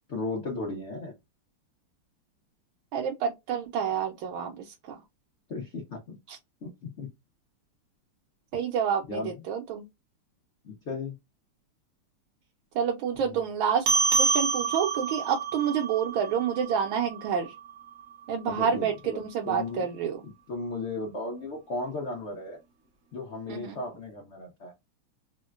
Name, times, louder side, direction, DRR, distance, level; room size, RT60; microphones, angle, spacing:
voice 1, 0.1-1.2 5.5-6.2 6.6-7.1 9.1-9.4 10.6-11.1 18.5-19.9 20.2-22.6 23.1-24.7, left 3 dB, 70° left, 0.6 m, -35 dB
voice 2, 2.9-4.9 6.3-6.4 8.5-9.8 12.7-13.9 14.2-17.5 18.3-20.2 23.5-23.8, right 7 dB, 75° right, 1.3 m, -28 dB
sound 1, 13.9-18.6, right 4 dB, 55° right, 0.9 m, -29 dB
3.6 x 2.1 x 2.4 m
omnidirectional pair, 2.4 m